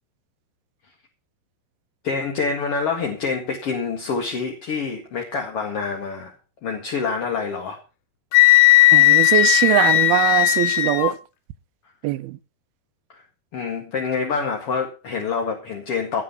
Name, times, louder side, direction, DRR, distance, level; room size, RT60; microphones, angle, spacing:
voice 1, 2.0-6.3 6.6-7.8 13.1-13.2 13.5-16.2, left 5 dB, 45° left, 2.3 m, -26 dB
Wind instrument woodwind instrument, 8.3-11.1, left 17 dB, 85° left, 3.1 m, -15 dB
voice 2, 8.9-11.2 12.0-12.4, right 16 dB, 80° right, 2.5 m, -21 dB
18.0 x 7.3 x 5.7 m
omnidirectional pair, 4.6 m